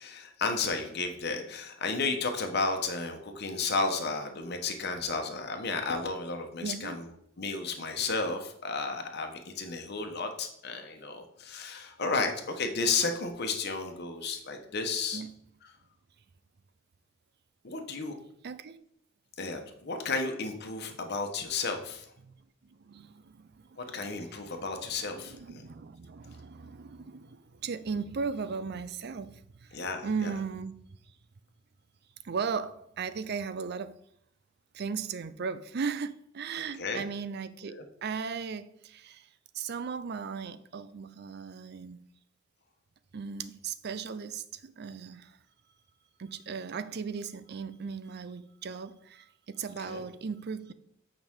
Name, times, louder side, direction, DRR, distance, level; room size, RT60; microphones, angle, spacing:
voice 1, 0.0-7.1 7.4-15.2 17.6-18.1 19.4-22.1 23.8-25.6 29.7-30.3 36.6-37.0 37.6-37.8 49.8-50.0, left 4 dB, 55° left, 1.1 m, -33 dB
voice 2, 6.6-7.0 15.1-15.3 18.4-18.8 22.2-22.3 22.6-24.6 25.1-30.8 32.2-34.0 34.7-37.7 38.0-39.3 39.5-42.0 43.1-45.4 46.2-50.7, right 5 dB, 55° right, 0.5 m, -37 dB
8.9 x 5.2 x 3.7 m
head